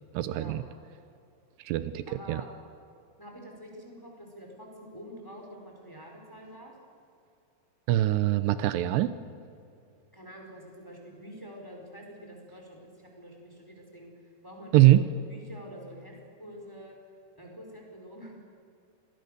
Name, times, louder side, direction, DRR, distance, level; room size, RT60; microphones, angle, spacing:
voice 1, 0.1-0.6 1.7-2.4 7.9-9.1 14.7-15.0, right 15 dB, 85° right, 13 dB, 2.8 m, -23 dB
voice 2, 2.1-2.5 3.2-6.7 10.1-17.0 17.3-18.4, equal, 5° left, 0 dB, 4.1 m, -47 dB
26.5 x 20.0 x 6.7 m, 2.5 s
omnidirectional pair, 4.9 m